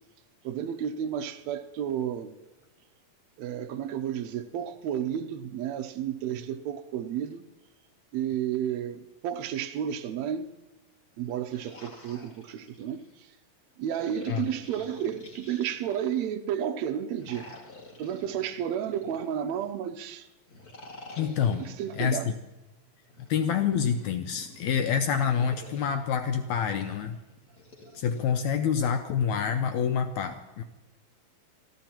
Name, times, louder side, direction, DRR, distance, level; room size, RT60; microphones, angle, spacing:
voice 1, 0.4-2.3 3.4-7.4 8.1-10.5 11.2-13.0 13.8-17.5 18.0-20.3 21.6-22.3, right 9 dB, 85° right, 1.5 m, -32 dB
sound 1, 11.2-13.1 13.9-16.3 17.1-19.7 20.5-22.1 23.1-25.9 26.6-28.2, left 2 dB, 30° left, 2.1 m, -49 dB
voice 2, 21.1-21.6 21.9-22.3 23.3-27.2 27.9-30.6, left 7 dB, 80° left, 1.7 m, -27 dB
27.5 x 13.5 x 3.0 m
omnidirectional pair, 4.1 m